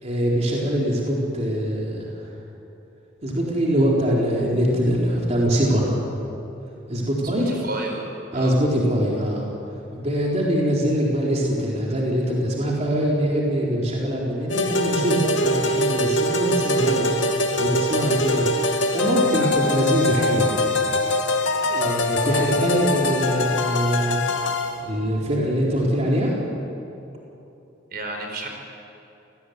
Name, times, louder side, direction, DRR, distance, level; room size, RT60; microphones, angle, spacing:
voice 1, 0.0-2.3 3.2-6.1 6.9-7.6 8.3-9.5 9.9-17.1 17.6-18.5 18.9-20.5 21.7-24.2 24.8-26.3, equal, 35° right, -3 dB, 4.2 m, -23 dB
voice 2, 7.4-8.5 15.6-15.8 19.4-19.6 27.9-28.5, right 2 dB, 55° right, 3 dB, 4.7 m, -32 dB
sound 1, 14.5-24.8, left 1 dB, 75° left, 2.4 m, -23 dB
28.5 x 19.0 x 9.6 m, 2.9 s
head